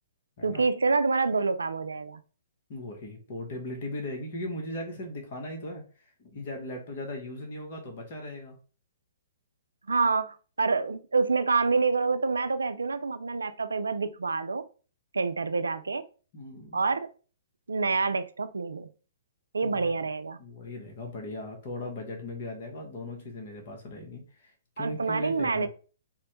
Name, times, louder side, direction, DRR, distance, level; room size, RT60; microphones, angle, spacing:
voice 1, 0.4-2.2 9.9-14.7 15.1-16.0 16.7-17.1 17.7-18.9 19.5-20.4 24.8-25.7, right 4 dB, 90° right, 12 dB, 0.3 m, -27 dB
voice 2, 2.7-5.8 6.2-8.5 16.3-16.8 19.6-19.9 20.4-25.7, left 1 dB, 50° left, 1 dB, 1.0 m, -38 dB
4.2 x 2.1 x 2.9 m, 0.37 s
hypercardioid pair, 130°, 0 cm